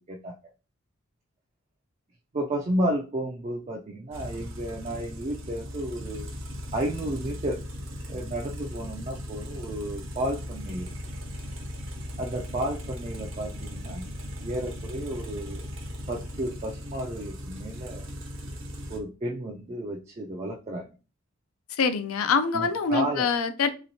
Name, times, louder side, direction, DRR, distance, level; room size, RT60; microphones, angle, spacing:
voice 1, 2.3-6.3 6.7-7.6 8.1-10.9 12.2-14.0 14.4-15.6 16.1-18.1 18.9-20.9 22.5-23.3, right 1 dB, 30° right, 0.3 m, -32 dB
sound 1, 4.1-19.0, left 1 dB, 60° right, 0.6 m, -38 dB
voice 2, 21.8-23.7, left 5 dB, 75° left, 0.4 m, -25 dB
3.2 x 3.0 x 2.6 m
head